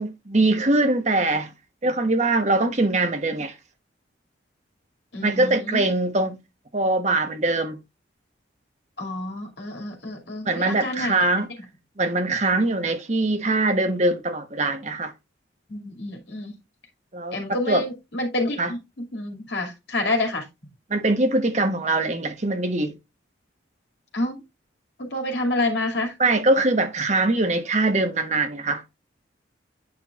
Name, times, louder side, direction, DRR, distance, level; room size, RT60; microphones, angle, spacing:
voice 1, 0.0-1.5 1.8-3.5 5.2-6.4 6.7-7.8 10.4-11.5 12.0-15.1 17.1-17.8 18.6-18.7 20.9-23.0 26.2-28.8, right 2 dB, 35° right, 1.0 m, -22 dB
voice 2, 5.1-5.9 9.0-11.4 15.7-16.5 17.3-20.4 24.1-24.4 25.0-26.1, left 2 dB, 65° left, 2.4 m, -28 dB
8.7 x 6.0 x 2.4 m
head